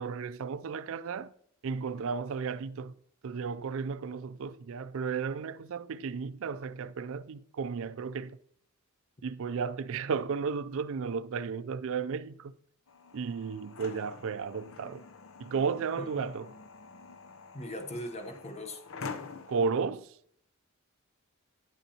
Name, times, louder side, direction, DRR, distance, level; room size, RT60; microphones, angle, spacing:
voice 1, 0.0-1.3 1.6-2.9 3.2-8.4 9.2-12.5 13.1-15.0 15.4-16.5 19.5-20.1, right 5 dB, 65° right, 0.4 m, -34 dB
sound 1, 12.9-19.7, left 4 dB, 65° left, 0.7 m, -46 dB
voice 2, 16.0-16.3 17.5-18.8, left 1 dB, 30° left, 0.9 m, -40 dB
9.8 x 8.1 x 2.9 m
head